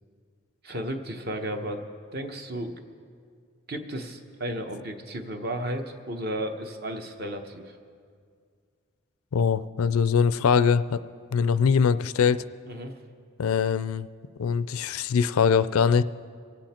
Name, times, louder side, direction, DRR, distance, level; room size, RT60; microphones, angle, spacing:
voice 1, 0.6-1.8 2.1-2.7 3.7-7.8 12.7-12.9, right 1 dB, 45° right, 5 dB, 1.0 m, -33 dB
voice 2, 9.3-11.0 11.3-12.4 13.4-14.1 14.4-16.0, left 6 dB, 80° left, 15 dB, 0.4 m, -22 dB
24.0 x 8.8 x 4.4 m, 2.1 s
head